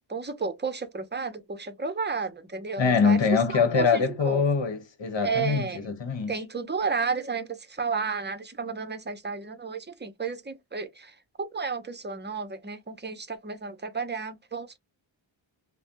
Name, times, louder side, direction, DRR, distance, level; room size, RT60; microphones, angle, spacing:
voice 1, 0.1-3.2 3.5-4.4 5.2-5.9 6.3-14.8, right 5 dB, 20° right, 0.7 m, -32 dB
voice 2, 2.8-6.3, left 5 dB, 60° left, 1.1 m, -24 dB
3.2 x 2.1 x 2.6 m
wide cardioid pair, 70°, 49 cm